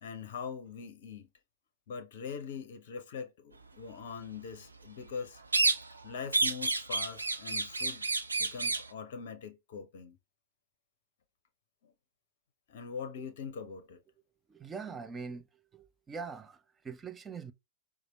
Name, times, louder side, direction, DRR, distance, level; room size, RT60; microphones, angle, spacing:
voice 1, 0.0-1.3 1.9-5.4 6.0-8.1 8.4-10.2 11.8-11.9 12.7-14.0, left 6 dB, 55° left, 0.6 m, -42 dB
sound 1, 5.5-6.0 6.3-8.9, right 3 dB, 80° right, 0.4 m, -30 dB
voice 2, 14.5-15.4 15.7-16.6 16.8-17.5, right 5 dB, 20° right, 0.4 m, -42 dB
4.1 x 2.4 x 2.8 m
figure-of-eight pair, 90°, 0 cm